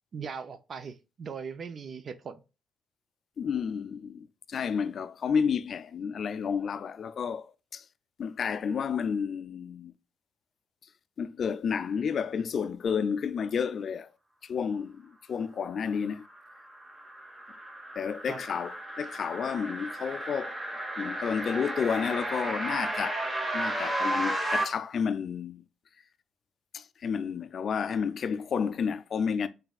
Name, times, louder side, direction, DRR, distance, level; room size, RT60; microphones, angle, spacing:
voice 1, 0.1-2.4 18.3-18.4, right 6 dB, 50° right, 0.4 m, -39 dB
voice 2, 3.4-7.8 8.2-9.9 11.2-14.1 14.4-16.2 18.0-20.6 21.0-23.2 23.5-25.6 26.7-29.5, left 6 dB, 55° left, 0.3 m, -31 dB
sound 1, 16.3-24.6, right 1 dB, 25° right, 1.2 m, -33 dB
4.0 x 3.9 x 2.3 m
cardioid pair, 90°, 0 cm